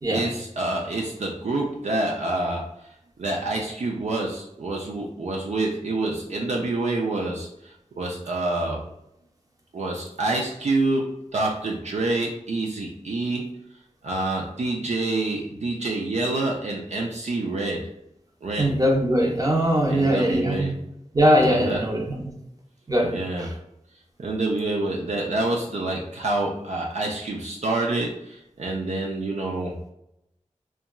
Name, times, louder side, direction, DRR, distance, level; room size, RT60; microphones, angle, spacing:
voice 1, 0.1-2.6 3.2-8.9 9.7-13.5 14.0-17.8 18.4-18.7 19.9-20.7 21.4-21.8 23.1-23.5 24.2-29.8, right 2 dB, 65° right, -2 dB, 0.4 m, -27 dB
voice 2, 18.6-20.7 21.1-22.2 22.9-23.1 23.4-23.5, equal, 30° right, -1 dB, 0.7 m, -21 dB
2.9 x 2.3 x 2.2 m, 0.82 s
wide cardioid pair, 45°, 13 cm